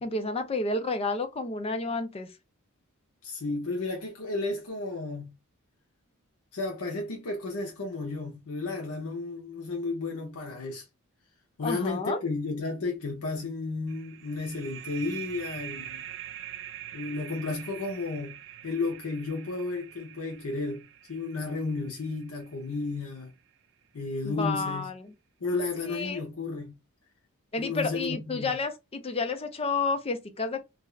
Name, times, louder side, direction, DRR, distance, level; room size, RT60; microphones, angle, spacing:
voice 1, 0.0-2.3 11.6-12.2 24.2-25.1 25.9-26.2 27.5-30.6, left 3 dB, 25° left, 0.5 m, -30 dB
voice 2, 3.2-5.4 6.5-10.8 11.6-16.1 16.9-18.4 18.6-23.3 23.9-24.9 25.4-26.8 27.6-28.6, left 3 dB, 75° left, 0.7 m, -33 dB
sound 1, 13.9-23.2, right 11 dB, 60° right, 0.4 m, -44 dB
2.5 x 2.4 x 3.1 m
head